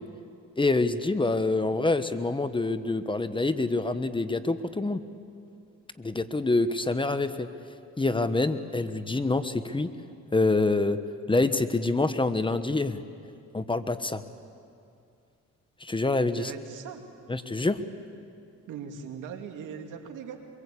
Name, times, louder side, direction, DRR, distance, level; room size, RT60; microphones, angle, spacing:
voice 1, 0.6-5.0 6.0-7.5 8.0-9.9 10.3-11.0 11.3-13.0 13.5-14.2 15.8-16.5 17.3-17.8, left 2 dB, 15° left, 11 dB, 1.1 m, -26 dB
voice 2, 16.4-17.0 18.7-20.4, right 7 dB, 85° right, 4 dB, 2.5 m, -40 dB
24.5 x 23.0 x 8.4 m, 2.5 s
cardioid pair, 90°, 30 cm